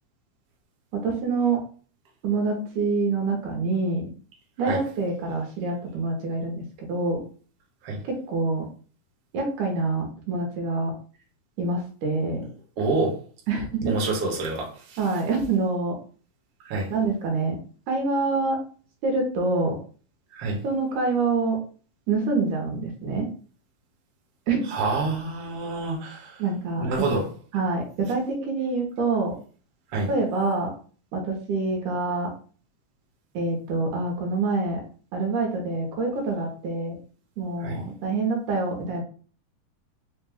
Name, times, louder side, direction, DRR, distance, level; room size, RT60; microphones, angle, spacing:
voice 1, 0.9-1.6 2.2-4.1 4.6-7.2 8.1-8.7 9.3-10.9 11.6-12.4 13.5-14.0 15.0-16.0 16.9-17.6 17.9-18.6 19.0-19.8 20.6-21.6 22.1-23.3 24.5-24.7 26.4-27.1 27.5-29.3 30.1-30.7 31.1-32.3 33.3-34.8 35.1-37.0 37.4-39.0, right 3 dB, 75° right, 2.2 m, -26 dB
voice 2, 12.8-13.2 13.8-15.0 16.6-16.9 20.3-20.6 24.7-26.4 26.8-27.3 29.9-30.1 37.6-37.8, right 3 dB, 60° right, 1.6 m, -27 dB
5.0 x 2.2 x 3.4 m
omnidirectional pair, 3.7 m